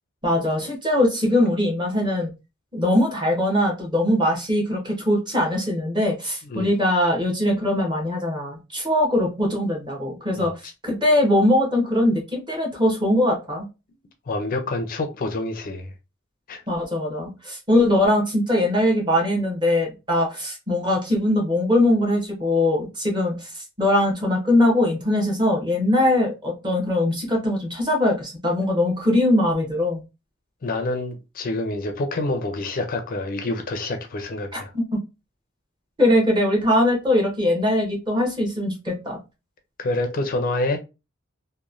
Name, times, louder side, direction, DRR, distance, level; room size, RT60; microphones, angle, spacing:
voice 1, 0.2-2.3 2.7-13.7 16.7-30.0 34.5-35.0 36.0-39.2, left 1 dB, 20° right, 0.9 m, -21 dB
voice 2, 14.3-15.9 16.5-16.6 30.6-34.7 39.8-40.8, left 2 dB, 45° left, 0.4 m, -27 dB
2.9 x 2.1 x 2.4 m
head